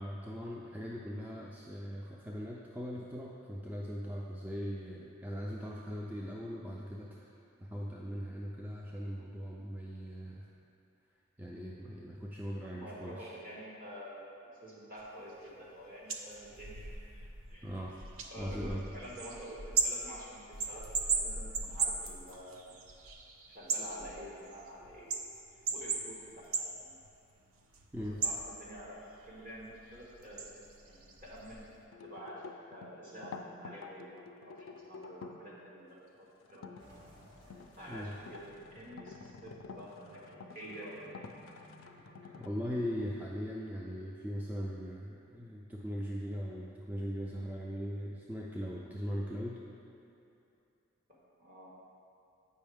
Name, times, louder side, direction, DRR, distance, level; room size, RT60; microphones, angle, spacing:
voice 1, 0.0-7.2 7.6-10.5 11.4-13.3 17.6-18.0 18.4-18.8 27.9-28.2 37.9-38.1 42.4-49.6, equal, 10° right, -3 dB, 0.3 m, -40 dB
voice 2, 12.6-14.3 14.6-16.9 17.5-17.7 18.3-20.8 21.1-22.7 23.5-25.2 25.7-27.0 28.1-30.4 30.9-37.0 37.8-41.2 51.1-51.7, equal, 45° right, -6 dB, 1.5 m, -48 dB
sound 1, 15.0-15.1 15.4-31.8, right 4 dB, 90° right, 0.6 m, -38 dB
sound 2, 31.9-35.5 36.5-36.8 37.3-42.5, left 4 dB, 80° left, 0.4 m, -49 dB
sound 3, 36.8-42.6, equal, 65° right, 1.4 m, -59 dB
8.3 x 5.4 x 3.5 m, 2.8 s
head